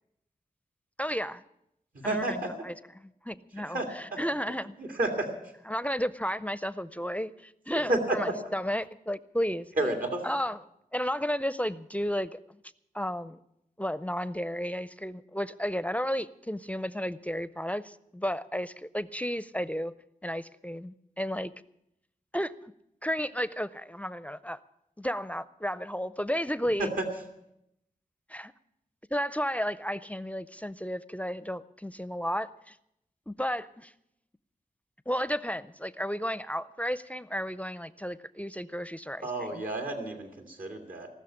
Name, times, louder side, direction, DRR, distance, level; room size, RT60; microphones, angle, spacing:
voice 1, 1.0-1.4 2.0-2.7 3.2-4.8 5.7-9.7 10.2-10.6 10.9-12.4 12.9-13.4 13.8-19.9 20.2-21.5 22.3-22.7 23.0-24.6 25.0-26.9 28.3-28.5 29.1-32.8 33.3-33.9 35.1-39.3, equal, 10° left, 16 dB, 0.4 m, -33 dB
voice 2, 1.9-2.5 3.7-4.2 4.5-5.5 7.9-8.4 9.8-10.2 26.8-27.0 39.2-41.1, right 2 dB, 75° right, 3 dB, 2.1 m, -31 dB
19.0 x 6.5 x 9.9 m, 0.80 s
wide cardioid pair, 75°, 14 cm